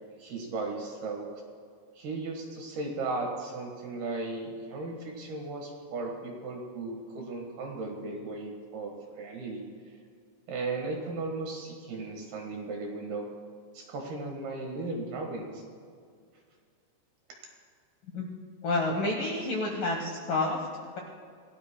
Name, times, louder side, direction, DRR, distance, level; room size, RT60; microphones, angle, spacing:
voice 1, 0.2-1.3 2.0-9.7 10.5-13.3 13.7-15.6, right 3 dB, 65° right, 1 dB, 3.0 m, -36 dB
voice 2, 18.6-21.0, left 2 dB, 70° left, 0 dB, 2.1 m, -29 dB
27.0 x 17.0 x 2.2 m, 2.2 s
omnidirectional pair, 5.7 m